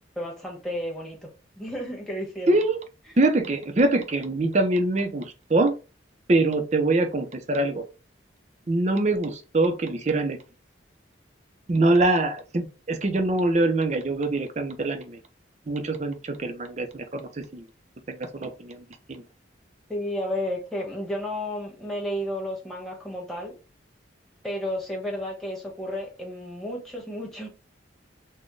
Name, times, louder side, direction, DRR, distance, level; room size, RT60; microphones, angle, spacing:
voice 1, 0.2-1.2 1.6-2.6 19.9-23.5 24.4-27.5, left 1 dB, ahead, 1.1 m, -32 dB
voice 2, 2.5-2.8 3.2-5.7 6.3-7.8 8.7-10.4 11.7-15.2 15.7-17.7 18.1-19.2, right 2 dB, 35° right, 0.5 m, -24 dB
4.1 x 2.2 x 3.1 m
head